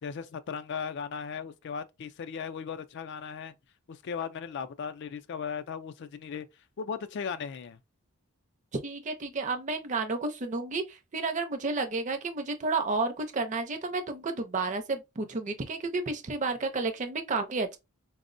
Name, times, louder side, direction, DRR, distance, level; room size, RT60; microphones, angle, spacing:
voice 1, 0.0-3.5 3.9-6.5 6.8-7.8, left 6 dB, 50° left, 0.3 m, -37 dB
voice 2, 8.8-17.8, right 3 dB, 35° right, 0.5 m, -31 dB
4.2 x 2.0 x 2.5 m
head